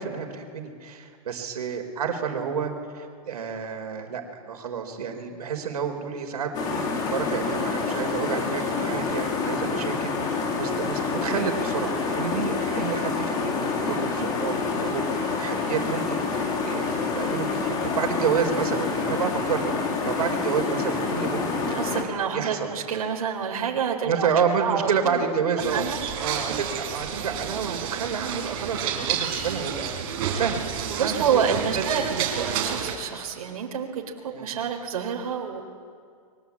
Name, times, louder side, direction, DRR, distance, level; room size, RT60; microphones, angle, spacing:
voice 1, 0.0-21.8 22.3-22.7 24.0-25.8 26.2-30.0 30.3-32.2 34.3-34.5, right 6 dB, 90° right, 4 dB, 4.3 m, -30 dB
sound 1, 6.5-22.0, left 4 dB, 20° left, 2.8 m, -27 dB
voice 2, 21.7-24.3 24.6-25.3 25.6-26.0 30.9-35.6, right 7 dB, 70° right, 0 dB, 4.0 m, -28 dB
sound 2, 25.6-32.9, right 8 dB, 40° right, 4.8 m, -30 dB
29.5 x 23.0 x 8.5 m, 2.1 s
hypercardioid pair, 170°, 19 cm